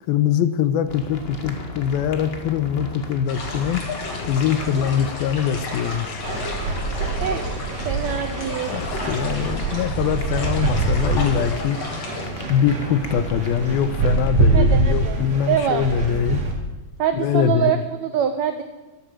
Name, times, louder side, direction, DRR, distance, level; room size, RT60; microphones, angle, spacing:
voice 1, 0.1-3.8 4.3-6.2 8.7-11.8 12.5-16.4 17.2-17.7, left 9 dB, 85° left, 11 dB, 2.7 m, -23 dB
sound 1, 0.9-14.3, left 2 dB, 65° left, 0.6 m, -36 dB
sound 2, 3.3-12.3, left 3 dB, 45° left, 3.5 m, -33 dB
sound 3, 6.2-16.5, right 3 dB, 50° right, 3.4 m, -24 dB
voice 2, 7.8-8.7 14.5-15.2 15.5-15.8 17.0-18.6, right 9 dB, 90° right, 8 dB, 1.5 m, -24 dB
13.0 x 12.0 x 7.7 m, 1.2 s
omnidirectional pair, 4.3 m